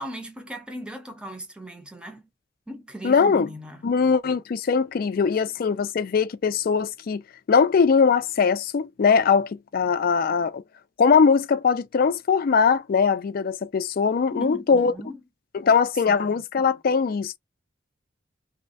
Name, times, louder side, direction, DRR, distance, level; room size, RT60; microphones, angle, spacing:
voice 1, 0.0-2.3 2.7-3.8 14.3-15.2 16.1-16.4, equal, 5° right, 0.7 m, -37 dB
voice 2, 3.0-3.5 3.8-7.2 7.5-10.6 11.0-14.9 15.5-17.4, left 5 dB, 50° left, 0.4 m, -21 dB
3.1 x 2.1 x 2.5 m
head